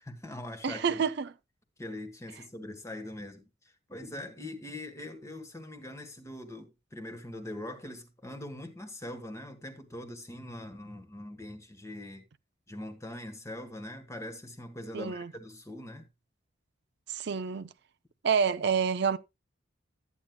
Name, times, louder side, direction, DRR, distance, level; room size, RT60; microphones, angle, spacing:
voice 1, 0.0-1.0 1.8-3.4 3.9-12.2 12.7-16.1, left 1 dB, 15° left, 1.5 m, -42 dB
voice 2, 0.6-1.3 14.9-15.3 17.1-17.7 18.2-19.2, right 6 dB, 60° right, 0.5 m, -28 dB
13.5 x 9.4 x 2.2 m
head